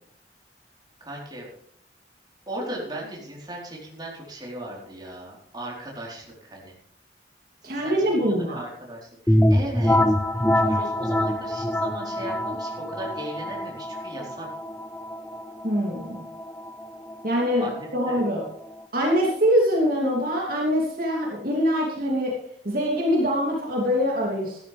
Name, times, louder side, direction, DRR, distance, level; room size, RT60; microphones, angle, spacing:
voice 1, 1.0-1.5 2.5-6.7 7.6-10.0 10.5-14.5 17.6-18.2, right 1 dB, 25° right, -3 dB, 4.2 m, -37 dB
voice 2, 7.6-8.6 15.6-16.2 17.2-17.7 17.9-18.5 18.9-22.4 22.6-24.6, equal, 55° right, -2 dB, 2.9 m, -23 dB
sound 1, 9.3-18.8, left 1 dB, 10° left, 0.7 m, -25 dB
13.5 x 13.0 x 3.5 m, 0.70 s
head